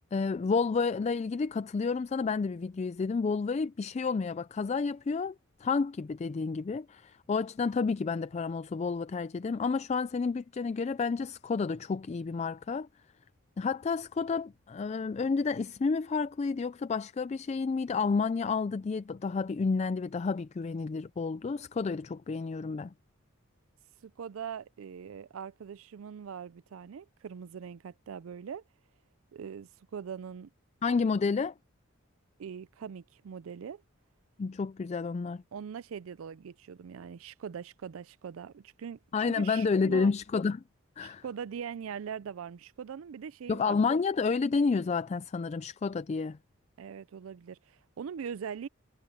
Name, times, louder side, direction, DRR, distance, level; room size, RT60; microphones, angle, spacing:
voice 1, 0.1-5.3 5.6-12.9 13.6-22.9 30.8-31.5 34.4-35.4 39.1-40.6 41.0-41.2 43.5-46.4, left 4 dB, 30° left, 0.3 m, -30 dB
voice 2, 24.0-28.6 29.3-30.5 32.4-33.8 35.5-40.1 41.0-43.6 46.8-48.7, right 7 dB, 80° right, 0.4 m, -42 dB
head